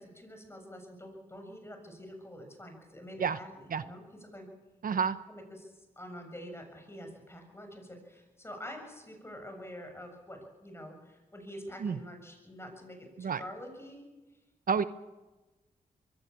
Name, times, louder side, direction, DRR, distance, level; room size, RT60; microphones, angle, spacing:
voice 1, 0.0-4.1 4.3-4.5 5.3-5.7 6.0-14.1, equal, 15° left, 4 dB, 7.2 m, -46 dB
voice 2, 4.8-5.2 11.8-12.0 13.2-13.4 14.7-14.8, right 6 dB, 65° right, 13 dB, 0.8 m, -29 dB
22.5 x 16.0 x 8.5 m, 1.1 s
cardioid pair, 65°, 15 cm